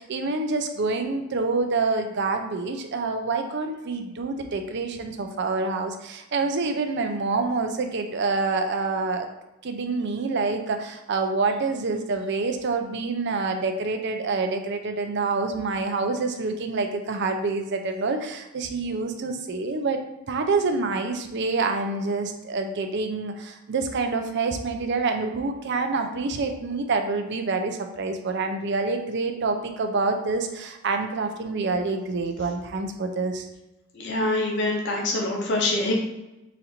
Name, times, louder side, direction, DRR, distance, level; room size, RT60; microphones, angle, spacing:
voice 1, 0.0-9.3 9.6-20.0 20.3-33.5, right 3 dB, 55° right, 5 dB, 0.5 m, -27 dB
voice 2, 33.9-35.9, left 2 dB, 60° left, 0 dB, 0.8 m, -25 dB
4.1 x 2.6 x 4.2 m, 0.96 s
head